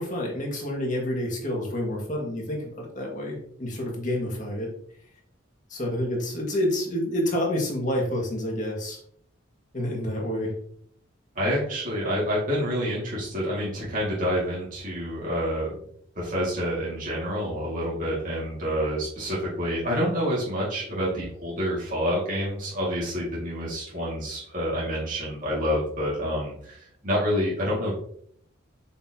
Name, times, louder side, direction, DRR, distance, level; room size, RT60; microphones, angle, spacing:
voice 1, 0.0-4.7 5.7-9.0 9.7-10.5, left 1 dB, 40° left, -1 dB, 2.0 m, -28 dB
voice 2, 11.4-15.7 16.2-27.9, equal, 40° right, -6 dB, 2.2 m, -28 dB
7.0 x 5.6 x 2.9 m, 0.65 s
head